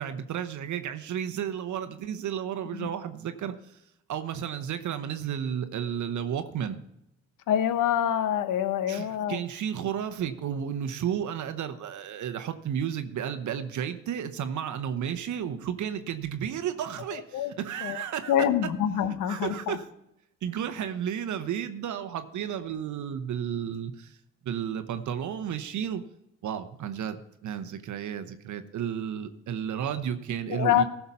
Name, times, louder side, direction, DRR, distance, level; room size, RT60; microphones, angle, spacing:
voice 1, 0.0-3.6 4.1-6.8 8.9-18.4 19.3-19.8 20.4-24.2 24.4-26.0 26.4-30.8, right 9 dB, 55° right, 10 dB, 1.0 m, -32 dB
voice 2, 7.5-9.4 17.3-17.5 17.8-18.0 18.3-19.8 30.5-30.8, left 10 dB, 65° left, 12 dB, 1.0 m, -26 dB
15.0 x 5.8 x 5.6 m, 0.81 s
hypercardioid pair, 50°, 34 cm